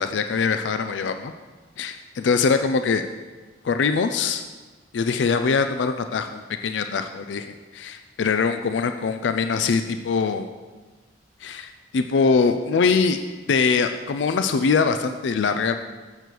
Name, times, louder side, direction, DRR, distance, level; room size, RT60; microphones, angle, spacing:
voice 1, 0.0-1.3 1.8-3.1 3.6-4.4 4.9-10.5 11.4-13.2 13.5-15.7, left 5 dB, 90° left, 8 dB, 0.4 m, -23 dB
7.7 x 6.8 x 4.6 m, 1.3 s
head